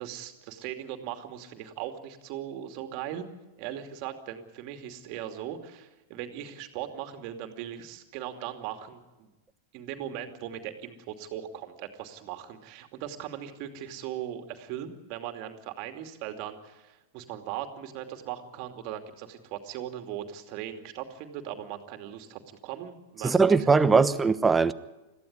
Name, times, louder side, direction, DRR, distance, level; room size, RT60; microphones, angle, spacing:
voice 1, 0.0-3.2 3.6-9.3 9.7-23.6 23.9-24.1, right 11 dB, 50° right, 2.6 m, -39 dB
voice 2, 23.2-24.7, right 4 dB, 15° right, 1.0 m, -20 dB
22.0 x 15.0 x 9.7 m
hypercardioid pair, 105°, 0 cm